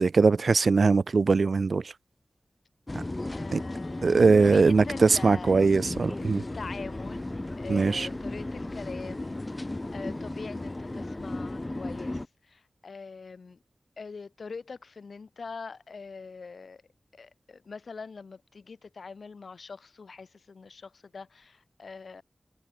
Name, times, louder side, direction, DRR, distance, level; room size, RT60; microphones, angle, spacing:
voice 1, 0.0-1.9 3.5-3.6 4.0-6.4 7.7-8.1, right 4 dB, 70° right, 0.4 m, -21 dB
sound 1, 2.9-12.3, left 2 dB, 25° left, 4.7 m, -35 dB
voice 2, 3.3-5.9 6.2-7.3 7.6-13.6 14.0-16.8 17.1-22.2, left 4 dB, 80° left, 3.9 m, -43 dB
wide cardioid pair, 85°, 0 cm